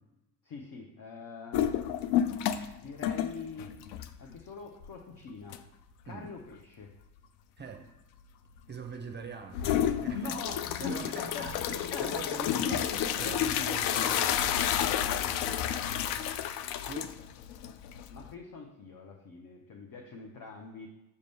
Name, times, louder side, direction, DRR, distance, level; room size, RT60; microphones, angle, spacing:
voice 1, 0.4-1.7 2.7-3.8 4.2-5.6 6.0-6.9 9.6-9.7 10.1-13.4 15.4-15.7 18.1-20.9, left 4 dB, 45° left, 1 dB, 1.0 m, -43 dB
sound 1, 1.5-2.7 3.0-4.4 4.8-4.9 5.5-5.6 9.5-18.3, left 10 dB, 60° left, 0.6 m, -30 dB
voice 2, 7.6-7.9 8.7-10.4 10.8-12.9 13.2-14.6 16.1-16.3 16.9-17.2, right 5 dB, 25° right, 4 dB, 0.7 m, -43 dB
6.7 x 5.2 x 3.5 m, 0.98 s
hypercardioid pair, 60°, 46 cm